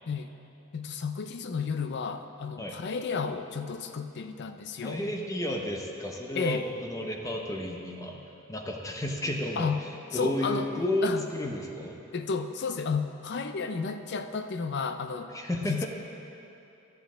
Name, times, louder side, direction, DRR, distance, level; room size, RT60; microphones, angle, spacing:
voice 1, 0.7-5.1 6.3-6.7 9.6-9.8 10.1-10.7 11.0-11.3 12.1-15.3 15.7-15.9, left 5 dB, 55° left, 8 dB, 0.5 m, -32 dB
voice 2, 4.8-8.2 8.5-9.7 10.1-12.0 15.3-15.9, left 1 dB, 15° left, 1 dB, 0.7 m, -32 dB
12.5 x 8.2 x 3.8 m, 2.9 s
head